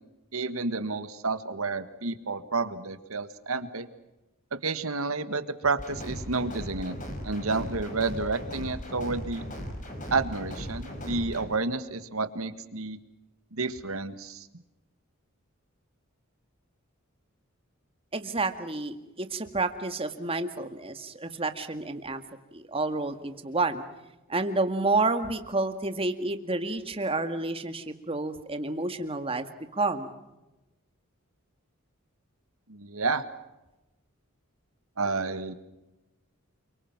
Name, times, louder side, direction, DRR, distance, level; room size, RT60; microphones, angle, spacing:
voice 1, 0.3-3.9 4.5-7.0 7.2-9.4 10.1-13.0 13.5-14.5 32.7-33.3 35.0-35.5, right 3 dB, 90° right, 11 dB, 1.8 m, -30 dB
sound 1, 5.8-11.4, equal, 35° left, 5.5 m, -38 dB
voice 2, 18.1-22.2 22.5-23.8 24.3-29.5 29.7-30.1, right 3 dB, 25° right, 8 dB, 1.9 m, -29 dB
29.0 x 24.0 x 6.0 m, 1.0 s
head